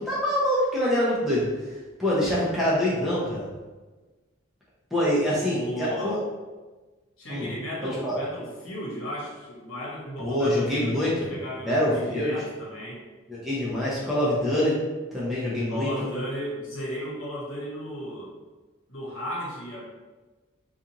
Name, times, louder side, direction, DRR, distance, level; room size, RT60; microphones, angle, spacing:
voice 1, 0.0-1.4 2.0-3.5 4.9-6.2 7.3-7.5 8.0-8.2 10.2-11.1 11.6-12.3 13.3-14.7 15.1-16.1, left 1 dB, ahead, -8 dB, 0.6 m, -25 dB
voice 2, 5.5-6.2 7.2-13.0 15.7-18.3 18.9-19.8, equal, 75° left, -5 dB, 1.1 m, -35 dB
4.1 x 2.5 x 2.8 m, 1.3 s
head